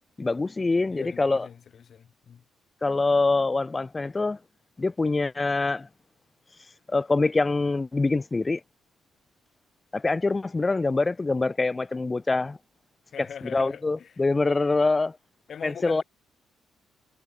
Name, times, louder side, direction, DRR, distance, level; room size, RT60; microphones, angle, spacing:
voice 1, 0.2-1.5 2.8-4.4 4.8-5.9 6.9-8.6 9.9-12.6 13.2-15.2 15.6-16.0, left 3 dB, 25° left, 0.8 m, -25 dB
voice 2, 0.9-2.4 13.1-14.1 14.5-14.6 15.5-16.0, left 8 dB, 55° left, 5.9 m, -42 dB
cardioid pair, 90°, 0 cm